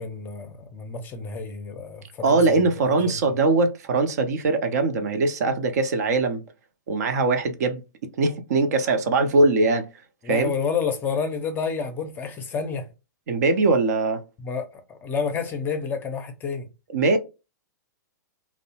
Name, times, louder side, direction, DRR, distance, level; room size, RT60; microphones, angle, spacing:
voice 1, 0.0-3.3 10.2-12.9 14.4-14.7 15.0-16.7, left 5 dB, 20° left, 0.5 m, -29 dB
voice 2, 2.2-6.4 6.9-7.8 8.2-9.9 10.3-10.5 13.3-14.2 16.9-17.2, right 3 dB, 60° right, 0.6 m, -21 dB
2.6 x 2.1 x 2.8 m
hypercardioid pair, 120°, 10 cm